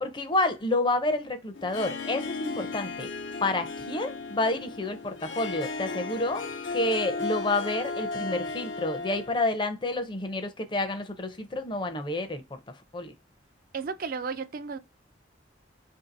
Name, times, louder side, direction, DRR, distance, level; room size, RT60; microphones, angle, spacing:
voice 1, 0.0-3.1 3.4-6.4 6.7-12.4 12.9-13.1, left 2 dB, 25° left, 0.5 m, -29 dB
Harp, 1.5-9.4, left 3 dB, 90° left, 0.7 m, -35 dB
voice 2, 13.7-14.8, right 5 dB, 50° right, 0.4 m, -33 dB
2.8 x 2.7 x 3.9 m
head